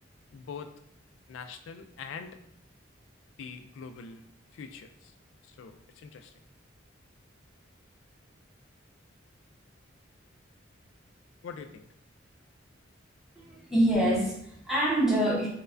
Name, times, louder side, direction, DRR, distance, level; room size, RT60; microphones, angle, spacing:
voice 1, 0.3-0.7 1.3-2.4 3.4-4.2 4.5-5.1 5.4-6.3 11.4-11.8, left 5 dB, 80° left, 8 dB, 0.3 m, -43 dB
voice 2, 13.4-15.5, right 1 dB, ahead, -6 dB, 0.8 m, -25 dB
4.5 x 2.2 x 2.5 m, 0.71 s
head